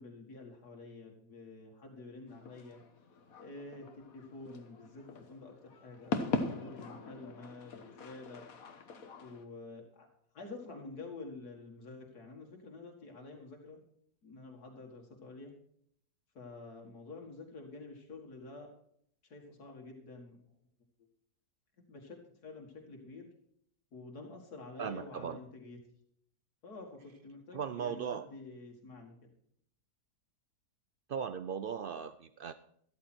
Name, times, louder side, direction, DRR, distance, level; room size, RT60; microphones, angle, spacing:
voice 1, 0.0-2.8 3.4-8.5 9.2-10.1 10.3-13.8 14.2-15.5 16.3-18.7 19.2-20.4 21.8-23.3 23.9-25.8 26.6-29.2, left 3 dB, 80° left, 1 dB, 2.4 m, -49 dB
sound 1, 2.3-9.4, left 4 dB, 65° left, 1.6 m, -41 dB
voice 2, 24.8-25.4 27.5-28.3 31.1-32.5, right 7 dB, 80° right, 12 dB, 0.4 m, -38 dB
13.5 x 13.0 x 4.4 m, 0.67 s
omnidirectional pair, 1.6 m